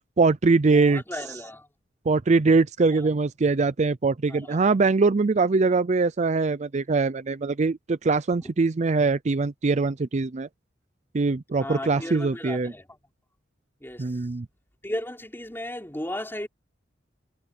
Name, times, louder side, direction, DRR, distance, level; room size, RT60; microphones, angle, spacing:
voice 1, 0.2-1.0 2.1-10.5 11.1-12.7 14.0-14.5, right 4 dB, 40° right, 0.5 m, -22 dB
voice 2, 0.7-1.7 2.9-3.1 4.3-4.6 11.6-13.0 13.8-14.3 14.8-16.5, left 1 dB, 10° left, 5.2 m, -35 dB
head